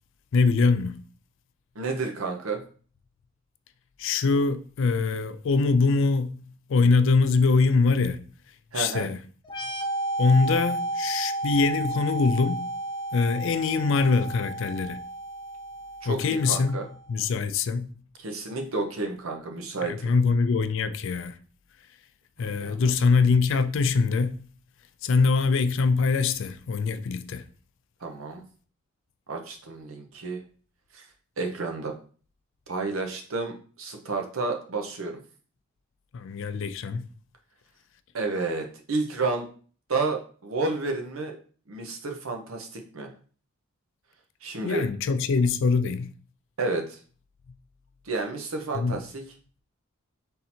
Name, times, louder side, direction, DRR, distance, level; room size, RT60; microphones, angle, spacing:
voice 1, 0.3-1.0 4.0-6.4 6.7-8.2 8.7-9.2 10.2-12.7 13.1-15.0 16.1-16.8 17.1-17.9 19.8-21.4 22.4-24.4 25.0-27.4 36.1-37.1 44.6-46.1 48.7-49.0, left 4 dB, 65° left, 0.4 m, -23 dB
voice 2, 1.7-2.6 8.7-9.1 16.0-16.8 18.2-20.1 22.4-22.9 28.0-28.4 29.3-30.4 30.9-31.0 31.4-31.9 32.7-35.2 38.1-39.5 39.9-41.4 41.7-43.1 44.4-44.9 46.6-47.0 48.1-49.2, right 3 dB, 80° right, 0.8 m, -31 dB
sound 1, 9.4-17.0, right 2 dB, 20° left, 0.7 m, -32 dB
3.7 x 2.8 x 4.2 m
head